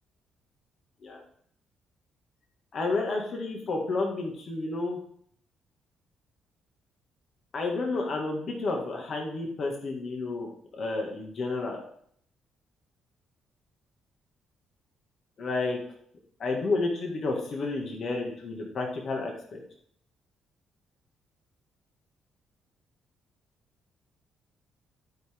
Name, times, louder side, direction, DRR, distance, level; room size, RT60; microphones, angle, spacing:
voice 1, 2.7-5.0 7.5-11.8 15.4-15.8 16.4-19.6, left 3 dB, 55° left, 1 dB, 2.0 m, -31 dB
11.5 x 5.1 x 3.7 m, 0.63 s
cardioid pair, 90°, 0 cm